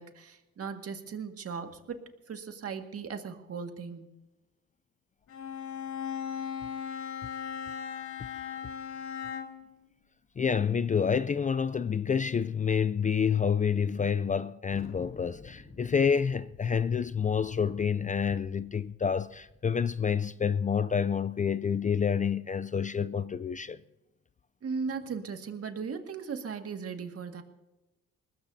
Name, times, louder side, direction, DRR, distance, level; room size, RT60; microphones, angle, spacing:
voice 1, 0.0-4.1 24.6-27.4, right 5 dB, 50° right, 1.9 m, -38 dB
Bowed string instrument, 5.3-9.7, left 8 dB, 70° left, 2.9 m, -37 dB
voice 2, 10.4-23.8, left 7 dB, 25° left, 0.4 m, -28 dB
Thunder, 14.7-19.9, left 3 dB, 45° left, 2.9 m, -51 dB
22.5 x 20.0 x 2.7 m
cardioid pair, 90°, 30 cm